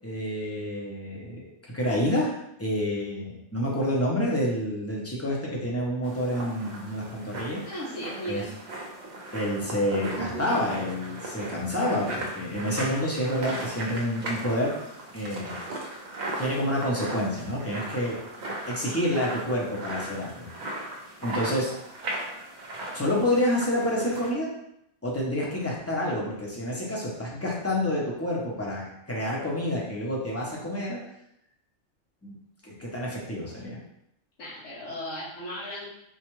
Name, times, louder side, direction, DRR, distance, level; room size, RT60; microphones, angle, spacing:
voice 1, 0.0-1.4 1.7-7.6 8.3-8.4 9.3-14.7 15.1-15.6 15.8-16.0 16.4-18.2 18.7-20.5 21.2-21.7 22.9-24.5 25.0-31.0 32.2-32.3 32.6-33.8, left 1 dB, 15° left, -4 dB, 0.5 m, -28 dB
sound 1, 6.0-24.3, right 1 dB, 50° right, 0.6 m, -37 dB
voice 2, 7.6-8.5 34.4-35.9, equal, 85° left, -7 dB, 1.2 m, -36 dB
4.2 x 2.3 x 3.0 m, 0.78 s
omnidirectional pair, 1.3 m